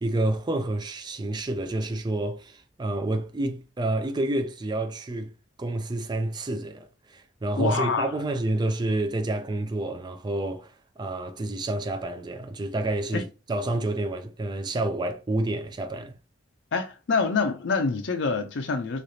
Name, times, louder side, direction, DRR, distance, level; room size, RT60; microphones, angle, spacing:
voice 1, 0.0-5.3 5.6-16.2, right 2 dB, 25° right, 0.4 m, -29 dB
voice 2, 7.6-8.1 13.1-13.2 16.7-19.0, left 4 dB, 75° left, 0.5 m, -26 dB
3.2 x 2.8 x 2.7 m
head